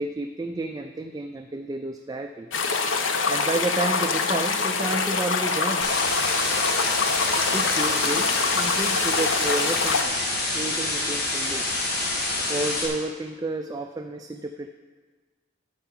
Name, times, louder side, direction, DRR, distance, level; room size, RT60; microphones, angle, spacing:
voice 1, 0.0-2.5 3.3-5.9 7.5-10.2 10.5-11.7 12.5-14.7, right 2 dB, 20° right, 5 dB, 0.3 m, -31 dB
sound 1, 2.5-10.0, left 4 dB, 85° left, 0.8 m, -25 dB
sound 2, 5.8-12.9, left 2 dB, 55° left, 1.7 m, -27 dB
11.5 x 4.6 x 7.1 m, 1.5 s
head